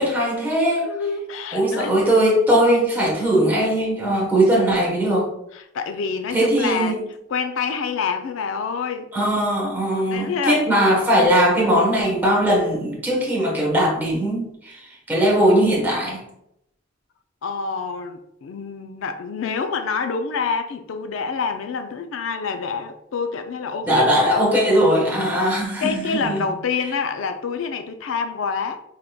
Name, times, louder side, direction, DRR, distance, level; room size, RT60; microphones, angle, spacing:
voice 1, 0.0-0.9 1.5-5.3 6.3-7.0 9.1-16.2 23.8-26.5, right 1 dB, 10° right, 1.0 m, -19 dB
voice 2, 0.8-2.1 5.5-7.0 7.3-9.1 9.9-10.8 17.4-24.5 25.1-25.4 25.8-28.8, left 5 dB, 75° left, 0.4 m, -27 dB
4.9 x 3.6 x 2.2 m
head